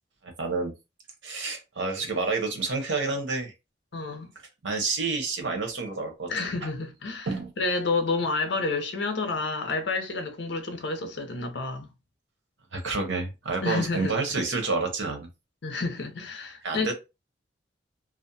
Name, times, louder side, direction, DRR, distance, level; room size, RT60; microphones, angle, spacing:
voice 1, 0.2-0.7 1.2-3.5 4.6-6.3 7.3-7.5 12.7-15.3 16.6-16.9, right 3 dB, 90° right, 0.8 m, -29 dB
voice 2, 3.9-4.3 6.3-7.3 7.6-11.9 13.6-14.1 15.6-16.9, left 3 dB, 70° left, 0.6 m, -29 dB
2.5 x 2.1 x 2.6 m
head